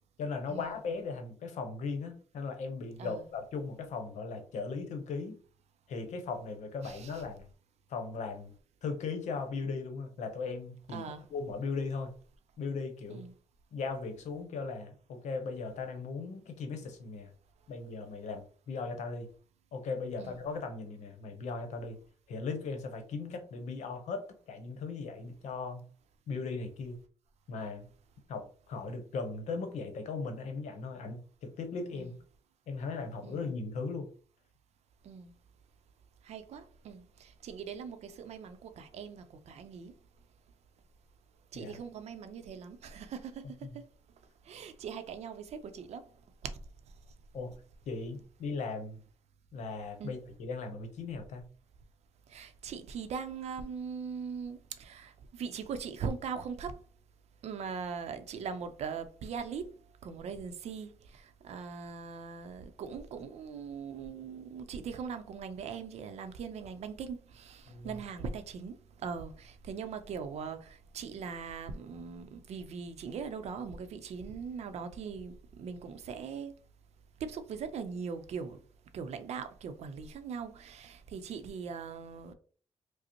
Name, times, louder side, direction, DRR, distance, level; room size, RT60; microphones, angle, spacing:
voice 1, 0.2-5.4 5.9-7.5 7.9-8.5 8.8-11.0 11.3-12.2 12.6-13.2 13.7-17.3 17.7-19.3 19.7-22.0 22.3-25.8 26.3-27.0 27.5-27.9 28.3-32.1 32.7-34.1 41.5-41.7 43.6-43.8 47.3-47.6 47.9-49.0 49.5-51.5 67.7-68.0, left 4 dB, 80° left, 0.8 m, -38 dB
voice 2, 6.8-7.2 10.9-11.2 13.1-13.3 20.2-20.4 31.9-32.2 33.2-33.4 35.0-35.3 36.2-39.9 41.5-43.8 44.5-46.0 46.4-46.5 50.0-50.1 52.3-56.8 57.4-59.7 60.0-76.5 77.2-78.6 78.9-82.3, right 6 dB, 65° right, 0.5 m, -41 dB
4.9 x 2.0 x 2.9 m
cardioid pair, 145°, 12 cm